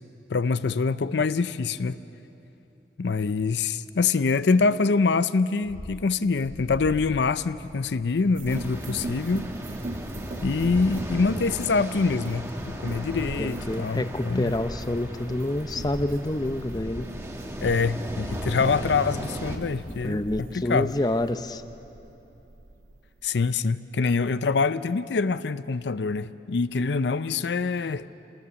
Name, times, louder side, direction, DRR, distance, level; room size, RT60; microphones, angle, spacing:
voice 1, 0.3-2.0 3.0-9.5 10.4-14.5 17.6-20.9 23.2-28.1, left 4 dB, 75° left, 0.5 m, -25 dB
sound 1, 5.6-20.5, equal, 5° left, 1.5 m, -43 dB
sound 2, 8.3-23.5, right 2 dB, 50° right, 0.5 m, -42 dB
sound 3, 8.5-19.6, equal, 15° right, 1.5 m, -36 dB
voice 2, 13.4-17.1 20.0-21.6, left 1 dB, 20° left, 0.6 m, -28 dB
28.5 x 19.5 x 7.0 m
head